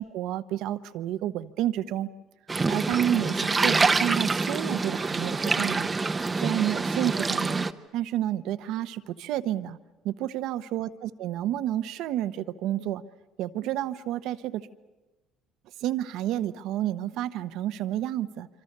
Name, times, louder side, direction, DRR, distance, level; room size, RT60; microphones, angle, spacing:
voice 1, 0.0-2.1 2.7-5.9 6.3-7.7 7.9-9.8 10.0-13.0 13.4-14.7 15.8-18.5, right 12 dB, 75° right, 12 dB, 1.0 m, -30 dB
sound 1, 2.5-7.7, right 3 dB, 20° right, 0.9 m, -26 dB
27.0 x 25.5 x 6.8 m, 1.2 s
supercardioid pair, 95°, 0 cm